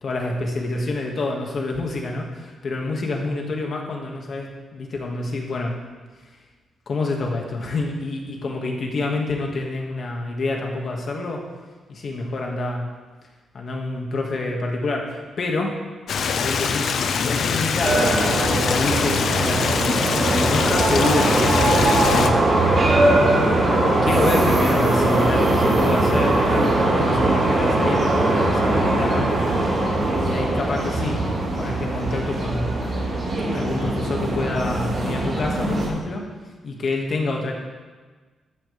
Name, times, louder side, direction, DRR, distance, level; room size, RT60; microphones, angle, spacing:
voice 1, 0.0-5.8 6.9-11.4 11.9-12.9 13.5-15.8 16.3-18.2 18.6-22.4 23.0-29.3 30.2-31.2 31.6-32.7 33.5-36.2 36.6-37.5, left 2 dB, 45° left, 0 dB, 2.0 m, -27 dB
Stream, 16.1-22.3, left 6 dB, 60° left, 0.8 m, -23 dB
sound 1, 17.8-35.9, right 2 dB, 40° right, 4.6 m, -21 dB
14.0 x 12.5 x 3.5 m, 1.4 s
wide cardioid pair, 160°, 0 cm